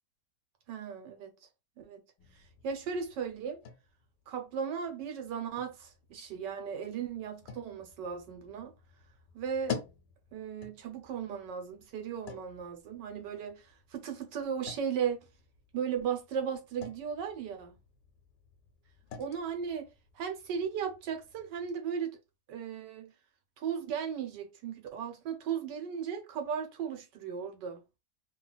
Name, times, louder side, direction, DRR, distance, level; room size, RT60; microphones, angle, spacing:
voice 1, 0.7-1.3 1.8-2.0 2.3-3.6 4.3-8.7 9.3-9.8 10.3-15.3 15.7-17.7 19.2-19.9 20.1-22.2 22.5-23.1 23.6-27.8, right 7 dB, 85° right, 1.5 m, -36 dB
sound 1, 2.2-21.7, left 7 dB, 90° left, 1.4 m, -49 dB
3.2 x 2.4 x 3.9 m
omnidirectional pair, 1.8 m